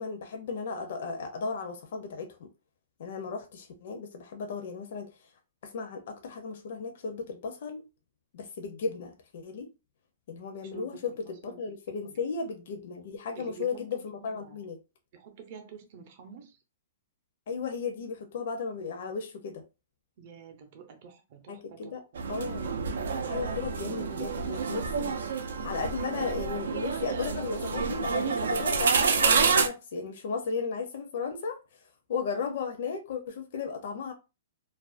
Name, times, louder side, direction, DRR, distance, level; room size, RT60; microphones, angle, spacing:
voice 1, 0.0-2.5 3.0-5.1 5.6-7.8 8.3-9.7 10.3-14.8 17.5-19.6 21.5-22.0 22.3-22.7 23.3-25.2 25.6-31.6 32.1-34.1, left 5 dB, 55° left, 0.4 m, -35 dB
voice 2, 10.7-11.2 11.4-11.6 12.1-12.2 13.3-14.7 15.1-16.6 20.2-21.9, right 7 dB, 40° right, 0.6 m, -48 dB
sound 1, 22.2-29.7, right 5 dB, 85° right, 0.4 m, -28 dB
2.4 x 2.2 x 2.4 m
hypercardioid pair, 165°, 0 cm